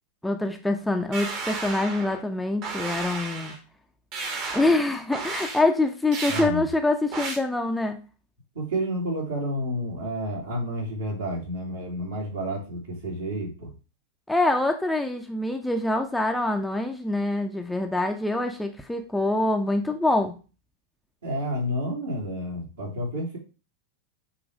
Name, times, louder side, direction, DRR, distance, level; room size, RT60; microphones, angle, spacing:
voice 1, 0.2-3.5 4.5-8.0 14.3-20.3, left 2 dB, 5° left, 4 dB, 0.7 m, -25 dB
sound 1, 1.1-2.2 2.6-3.6 4.1-4.8 5.1-5.6 6.1-6.5 7.1-7.4, right 4 dB, 40° right, 1.7 m, -33 dB
voice 2, 6.3-6.6 8.5-13.7 21.2-23.4, equal, 65° right, -1 dB, 3.0 m, -30 dB
7.1 x 3.3 x 4.9 m, 0.34 s
figure-of-eight pair, 90°, 0 cm